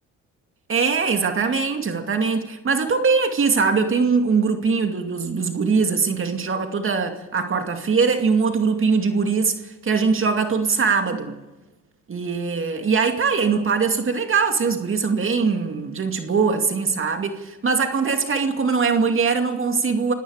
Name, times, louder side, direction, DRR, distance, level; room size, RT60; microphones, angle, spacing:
voice 1, 0.7-11.4 12.1-20.1, right 5 dB, 45° right, 2.3 m, -21 dB
29.5 x 17.5 x 5.0 m
cardioid pair, 90°, 30 cm